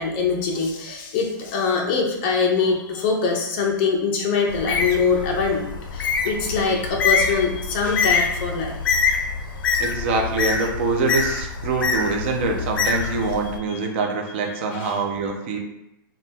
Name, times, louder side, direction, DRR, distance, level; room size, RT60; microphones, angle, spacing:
voice 1, 0.0-8.7 14.7-14.9, left 5 dB, 30° left, 0 dB, 0.5 m, -23 dB
Bird, 4.5-13.6, left 5 dB, 85° left, 0.4 m, -25 dB
voice 2, 9.8-15.6, right 3 dB, 35° right, 3 dB, 0.4 m, -24 dB
2.7 x 2.2 x 3.4 m, 0.84 s
hypercardioid pair, 170°, 11 cm